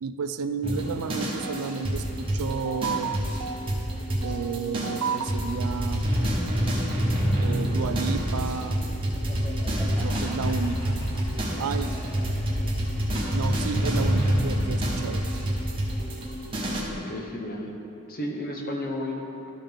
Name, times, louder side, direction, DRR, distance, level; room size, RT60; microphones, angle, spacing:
voice 1, 0.0-3.8 4.2-6.1 7.4-8.9 9.8-11.0 11.6-12.0 13.3-15.3, right 5 dB, 80° right, 10 dB, 0.4 m, -31 dB
sound 1, 0.6-16.8, equal, 25° right, 1.2 m, -27 dB
Laughter, 6.9-12.9, equal, 10° left, 0.8 m, -43 dB
sound 2, 10.4-16.9, left 1 dB, 65° left, 0.9 m, -40 dB
voice 2, 16.9-17.7 18.1-19.5, left 1 dB, 40° left, 1 dB, 0.8 m, -33 dB
12.5 x 5.5 x 3.5 m, 2.8 s
head